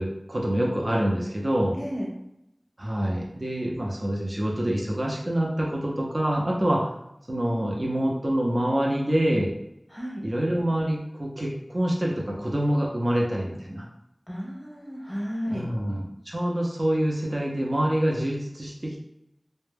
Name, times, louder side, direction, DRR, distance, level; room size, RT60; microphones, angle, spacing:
voice 1, 0.0-1.8 2.8-6.8 7.3-9.5 10.2-13.9 15.5-19.0, right 1 dB, 50° right, -2 dB, 0.6 m, -26 dB
voice 2, 1.8-2.1 9.9-10.2 14.3-15.6, equal, 5° left, -3 dB, 0.8 m, -33 dB
2.2 x 2.1 x 3.2 m, 0.84 s
wide cardioid pair, 45°, 0 cm